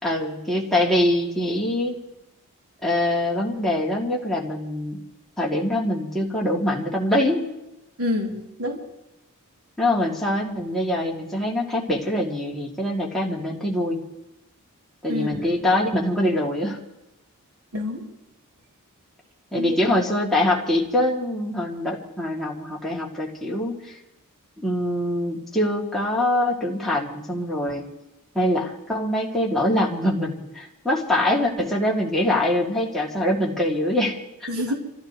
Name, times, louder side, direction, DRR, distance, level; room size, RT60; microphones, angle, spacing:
voice 1, 0.0-2.0 2.8-5.0 5.4-7.5 9.8-14.0 15.0-16.8 19.5-23.9 24.6-27.8 28.3-34.5, left 1 dB, ahead, -4 dB, 2.8 m, -24 dB
voice 2, 8.0-8.8 15.1-15.5 17.7-18.0 19.6-19.8 34.5-34.7, left 1 dB, 70° right, -1 dB, 3.7 m, -27 dB
27.0 x 16.0 x 3.3 m, 0.92 s
head